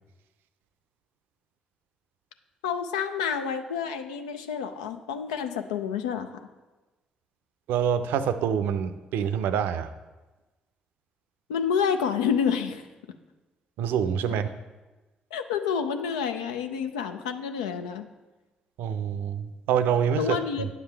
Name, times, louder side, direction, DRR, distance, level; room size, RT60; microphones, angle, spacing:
voice 1, 2.6-6.5 11.5-12.8 15.3-18.0 20.2-20.7, left 7 dB, 85° left, 8 dB, 0.4 m, -28 dB
voice 2, 7.7-9.9 13.8-14.5 18.8-20.7, right 8 dB, 70° right, 12 dB, 0.5 m, -26 dB
9.4 x 7.2 x 3.4 m, 1.2 s
hypercardioid pair, 45°, 3 cm